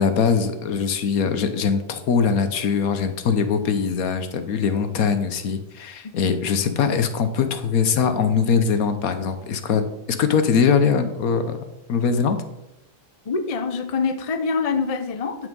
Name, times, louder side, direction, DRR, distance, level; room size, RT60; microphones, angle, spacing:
voice 1, 0.0-9.8 10.1-11.6 11.9-12.4, left 6 dB, 65° left, 9 dB, 1.3 m, -21 dB
voice 2, 13.3-15.5, left 4 dB, 40° left, 8 dB, 0.5 m, -25 dB
9.5 x 5.9 x 5.3 m, 0.88 s
omnidirectional pair, 1.7 m